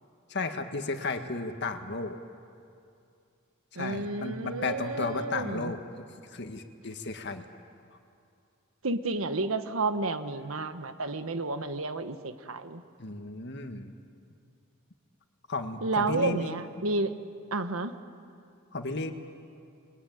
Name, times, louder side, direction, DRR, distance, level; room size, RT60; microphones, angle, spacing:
voice 1, 0.3-2.2 3.7-7.4 13.0-13.9 15.5-16.6 18.7-19.1, left 3 dB, 55° left, 6 dB, 1.8 m, -34 dB
voice 2, 3.7-5.7 8.8-12.8 15.8-17.1 17.5-17.9, right 3 dB, 80° right, 9 dB, 1.4 m, -31 dB
29.0 x 21.5 x 9.5 m, 2.5 s
head